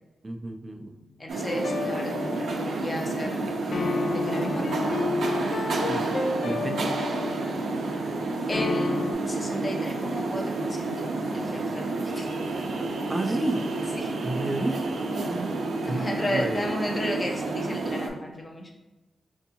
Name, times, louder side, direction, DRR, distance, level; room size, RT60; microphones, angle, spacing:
voice 1, 0.2-1.1 5.9-6.9 13.1-13.7 14.2-16.7, right 2 dB, 20° right, 4 dB, 0.3 m, -32 dB
voice 2, 1.2-5.2 5.4-5.5 5.9-6.2 6.6-7.0 8.5-12.4 14.0-14.1 15.9-18.7, left 1 dB, 25° left, 0 dB, 0.6 m, -34 dB
sound 1, 1.3-18.1, right 2 dB, 80° right, 0.5 m, -30 dB
sound 2, 1.5-2.9 3.7-7.7 8.5-9.1, left 3 dB, 70° left, 0.3 m, -30 dB
4.3 x 2.7 x 2.7 m, 1.1 s
wide cardioid pair, 115°, 0 cm